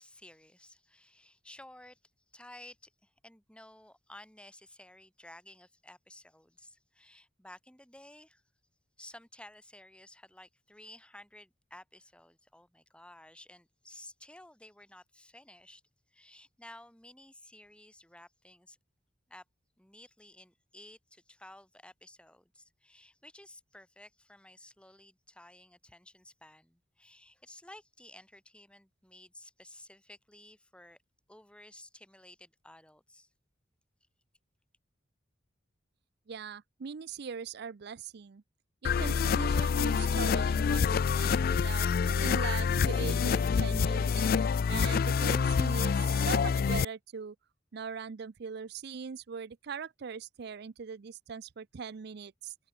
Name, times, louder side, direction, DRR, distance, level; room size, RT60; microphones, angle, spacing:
voice 1, 0.0-2.0 2.3-8.4 9.0-15.8 16.1-18.8 19.3-19.4 19.8-31.0 31.3-33.3, left 1 dB, 5° left, 2.4 m, -54 dB
voice 2, 36.3-38.4 38.8-44.3 44.7-47.4 47.7-52.5, right 6 dB, 60° right, 0.5 m, -41 dB
sound 1, 38.8-46.8, left 6 dB, 50° left, 0.4 m, -27 dB
head